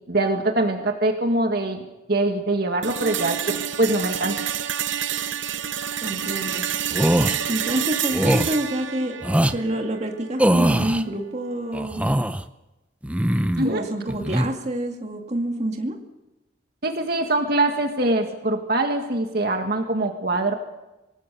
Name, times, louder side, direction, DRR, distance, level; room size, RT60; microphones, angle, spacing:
voice 1, 0.1-4.4 13.6-13.8 16.8-20.5, right 2 dB, 55° right, 4 dB, 1.9 m, -23 dB
sound 1, 2.8-10.8, right 9 dB, 80° right, 0.9 m, -29 dB
voice 2, 6.0-6.6 7.5-9.2 9.5-12.0 13.6-16.0, right 1 dB, 35° right, 3 dB, 2.2 m, -27 dB
sound 2, 6.9-7.4 8.1-8.5 9.2-9.6 10.4-11.0 11.7-12.4 13.0-13.7 14.1-14.5, right 1 dB, 5° right, 0.7 m, -21 dB
26.0 x 19.0 x 6.8 m, 1.0 s
head